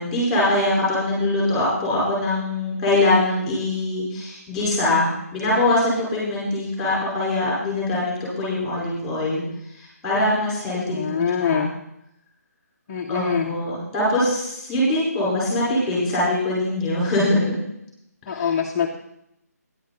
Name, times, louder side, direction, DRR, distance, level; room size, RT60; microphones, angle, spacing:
voice 1, 0.0-9.4 9.7-11.6 13.1-17.5 18.3-18.4, left 1 dB, 5° left, -7 dB, 4.9 m, -23 dB
voice 2, 10.9-11.7 12.9-13.5 18.3-19.0, left 7 dB, 20° left, 1 dB, 0.6 m, -24 dB
13.0 x 10.5 x 4.2 m, 0.80 s
hypercardioid pair, 170°, 9 cm